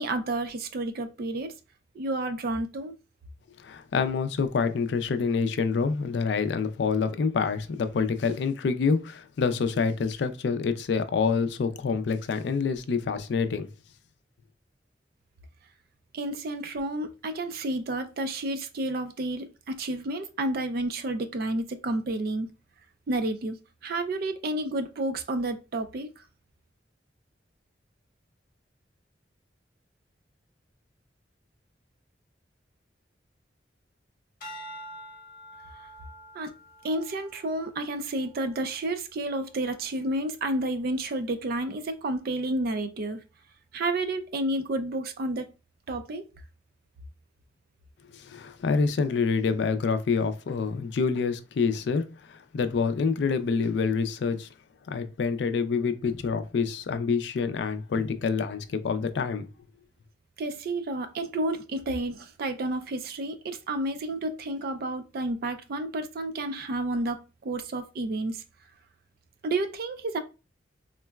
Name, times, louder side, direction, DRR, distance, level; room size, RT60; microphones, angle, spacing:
voice 1, 0.0-1.5 1.9-3.0 16.1-22.5 23.1-23.6 23.8-26.1 36.3-36.5 36.8-43.2 43.7-45.5 45.9-46.3 60.4-68.4 69.4-70.2, right 2 dB, 55° right, 0.4 m, -30 dB
voice 2, 3.6-13.7 48.1-54.5 54.9-59.5, left 5 dB, 70° left, 0.4 m, -27 dB
sound 1, 34.4-38.9 39.4-39.8, equal, 50° left, 1.0 m, -47 dB
3.7 x 2.1 x 2.2 m
head